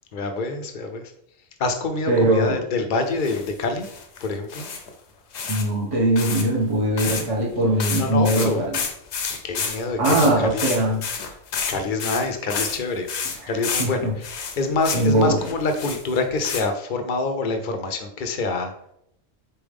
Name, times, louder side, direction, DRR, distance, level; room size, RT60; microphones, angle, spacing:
voice 1, 0.1-1.0 1.6-3.9 4.2-4.7 8.0-8.6 9.4-10.6 11.7-13.1 13.5-18.7, left 3 dB, 55° left, 6 dB, 0.7 m, -26 dB
voice 2, 2.1-2.6 5.5-8.8 10.0-11.0 13.4-13.5 13.8-14.1 14.9-15.4, right 1 dB, 30° right, -3 dB, 1.0 m, -21 dB
sound 1, 3.2-3.5 3.8-4.9 5.3-5.6 5.9-6.4 7.0-7.2 7.5-7.6 7.8-12.8 13.1-13.9 14.2-15.1 15.4-16.6, left 5 dB, 75° left, 1.0 m, -29 dB
4.2 x 3.4 x 3.4 m, 0.73 s
omnidirectional pair, 1.2 m